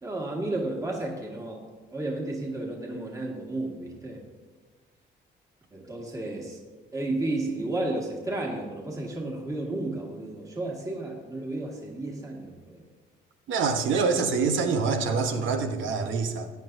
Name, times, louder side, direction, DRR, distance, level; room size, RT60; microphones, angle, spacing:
voice 1, 0.0-1.6 1.9-4.2 5.7-6.6 6.9-12.8, right 2 dB, 15° right, -1 dB, 1.8 m, -32 dB
voice 2, 13.5-16.5, right 5 dB, 75° right, 6 dB, 1.1 m, -25 dB
15.0 x 9.1 x 2.7 m, 1.5 s
cardioid pair, 90°, 20 cm